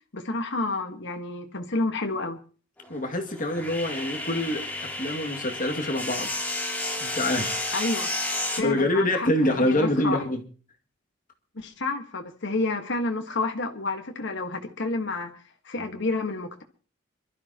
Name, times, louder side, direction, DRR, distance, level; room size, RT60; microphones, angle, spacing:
voice 1, 0.1-2.4 7.7-8.1 8.5-10.2 11.5-15.3 15.6-16.6, left 2 dB, 65° left, 1.6 m, -30 dB
sound 1, 2.8-8.6, left 2 dB, 10° left, 3.0 m, -31 dB
voice 2, 2.9-4.7 5.0-6.3 7.0-7.6 8.6-10.4, left 1 dB, 45° left, 2.3 m, -25 dB
26.0 x 12.5 x 3.0 m
head